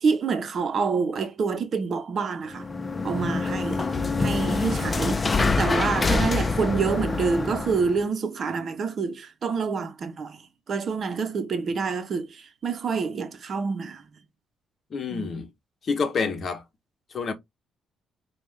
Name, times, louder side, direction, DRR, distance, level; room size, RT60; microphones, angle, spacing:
voice 1, 0.0-2.7 3.0-3.8 4.2-5.2 5.6-10.4 10.7-14.0 15.1-15.3, right 5 dB, 50° right, 0.8 m, -27 dB
sound 1, 2.5-8.0, left 3 dB, 25° left, 0.6 m, -25 dB
voice 2, 14.9-15.5 15.8-16.6 17.1-17.3, left 5 dB, 50° left, 0.9 m, -27 dB
5.2 x 2.4 x 3.2 m
cardioid pair, 90°, 0 cm